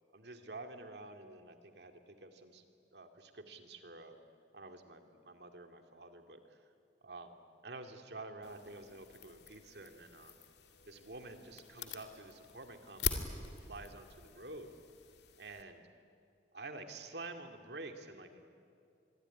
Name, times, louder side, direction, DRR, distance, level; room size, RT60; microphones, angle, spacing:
voice 1, 0.1-2.7 2.9-4.2 4.5-6.6 7.0-7.3 7.6-10.3 10.9-14.7 15.4-15.8 16.5-18.4, right 2 dB, 65° right, 5 dB, 2.4 m, -49 dB
sound 1, 8.4-15.6, left 6 dB, 65° left, 2.3 m, -44 dB
26.5 x 22.0 x 9.9 m, 2.4 s
head